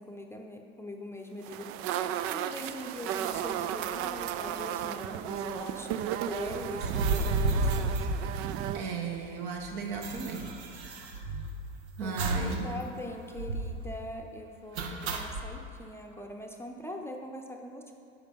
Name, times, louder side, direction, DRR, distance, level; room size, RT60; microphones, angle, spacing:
voice 1, 0.0-1.9 2.2-8.0 12.0-12.2 12.6-17.9, left 1 dB, 10° left, 2 dB, 0.7 m, -42 dB
sound 1, 1.4-8.8, right 10 dB, 45° right, 0.5 m, -34 dB
sound 2, 6.7-9.0 9.3-9.4 9.6-11.7 12.2-12.6 12.9-13.0 13.4-13.8 14.8-15.5, right 2 dB, 80° right, 1.3 m, -31 dB
voice 2, 8.7-10.6 12.0-12.7, right 4 dB, 60° right, 2 dB, 1.6 m, -35 dB
10.5 x 6.6 x 5.4 m, 2.6 s
supercardioid pair, 105°, 32 cm